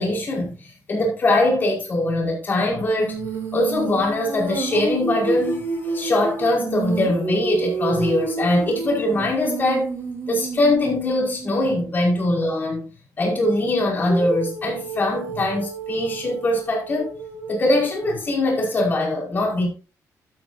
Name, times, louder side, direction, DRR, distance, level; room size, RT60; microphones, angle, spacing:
voice 1, 0.0-3.2 3.5-9.9 10.3-12.9 13.2-17.1 17.5-19.7, left 1 dB, 30° left, 5.2 m, -22 dB
Female singing, 3.0-11.9 14.1-18.3, right 4 dB, 45° right, 4.2 m, -30 dB
12.0 x 10.0 x 2.8 m
wide cardioid pair, 170°, 6 cm